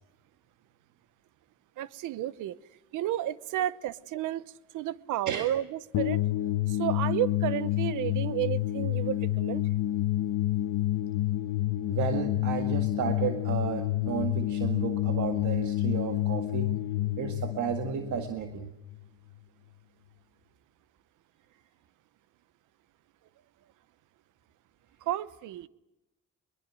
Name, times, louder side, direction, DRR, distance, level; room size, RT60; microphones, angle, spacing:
voice 1, 1.8-2.6 2.9-4.4 4.7-6.2 6.7-9.7 25.0-25.7, right 13 dB, 90° right, 18 dB, 1.0 m, -32 dB
sound 1, 5.9-19.1, left 14 dB, 75° left, 1.0 m, -29 dB
voice 2, 11.9-16.8 17.2-18.7, right 8 dB, 70° right, 7 dB, 1.9 m, -33 dB
23.0 x 22.5 x 7.7 m, 0.94 s
cardioid pair, 90°, 30 cm